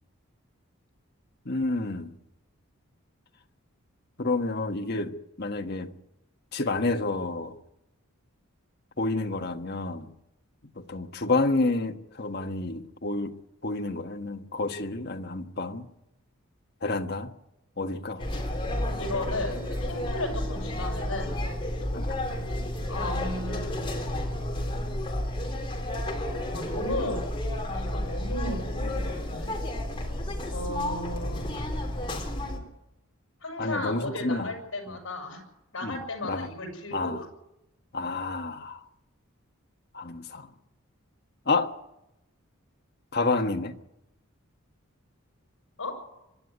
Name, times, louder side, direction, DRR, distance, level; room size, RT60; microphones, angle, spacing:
voice 1, 1.4-2.1 4.2-5.9 6.5-7.5 9.0-10.1 10.8-13.3 13.6-15.9 16.8-17.3 17.8-18.2 21.9-22.1 33.6-34.5 35.8-36.0 36.3-36.5 36.9-37.2 37.9-38.8 39.9-40.5 41.5-41.7 43.1-43.7, left 2 dB, 45° left, 1.4 m, -29 dB
sound 1, 18.2-32.6, left 1 dB, 25° left, 3.4 m, -31 dB
voice 2, 19.0-19.5 19.8-21.3 22.9-24.0 26.5-27.2 27.6-29.5 30.5-31.5 33.4-35.4 35.7-37.3 45.8-46.0, left 1 dB, 65° left, 7.4 m, -35 dB
25.0 x 11.0 x 9.6 m
head